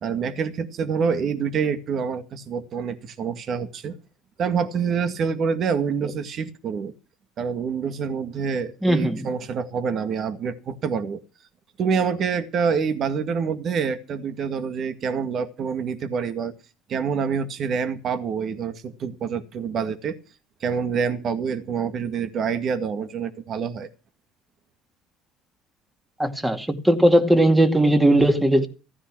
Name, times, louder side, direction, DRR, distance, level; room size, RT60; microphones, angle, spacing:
voice 1, 0.0-4.0 4.4-6.9 7.4-11.2 11.8-16.5 16.9-20.2 20.6-23.9, right 6 dB, 50° right, 1.9 m, -26 dB
voice 2, 8.8-9.3 26.2-28.7, right 1 dB, 10° right, 2.3 m, -18 dB
15.5 x 9.8 x 6.1 m
supercardioid pair, 85°, 0 cm